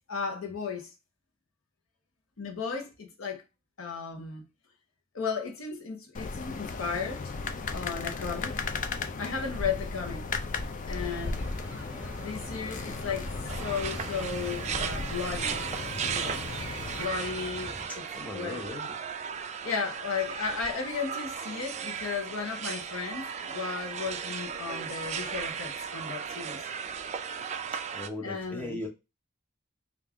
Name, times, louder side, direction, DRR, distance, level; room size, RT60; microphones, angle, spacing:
voice 1, 0.1-0.9 2.4-3.4 3.8-4.4 5.1-7.2 7.7-8.7 9.2-10.3 10.9-11.4 12.2-15.6 16.0-16.5 16.9-18.6 19.6-26.6 28.2-28.8, left 5 dB, 80° left, 0.8 m, -35 dB
sound 1, 6.1-17.1, left 4 dB, 40° left, 0.4 m, -36 dB
sound 2, 10.9-17.9, equal, 10° right, 1.1 m, -44 dB
sound 3, 13.5-28.1, right 7 dB, 35° right, 0.3 m, -36 dB
voice 2, 18.1-19.0 27.9-28.9, left 2 dB, 10° left, 0.8 m, -38 dB
3.5 x 2.4 x 3.4 m
head